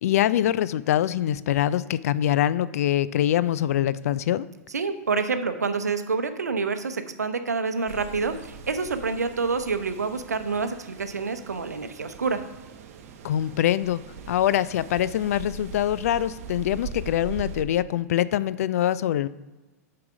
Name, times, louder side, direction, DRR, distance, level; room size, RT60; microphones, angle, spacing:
voice 1, 0.0-4.5 13.2-14.0 14.3-19.3, left 11 dB, 65° left, 17 dB, 0.3 m, -24 dB
voice 2, 4.7-12.4, right 4 dB, 90° right, 9 dB, 0.7 m, -27 dB
sound 1, 7.9-17.6, right 5 dB, 60° right, 0.9 m, -41 dB
7.3 x 4.8 x 4.9 m, 1.2 s
hypercardioid pair, 105°, 9 cm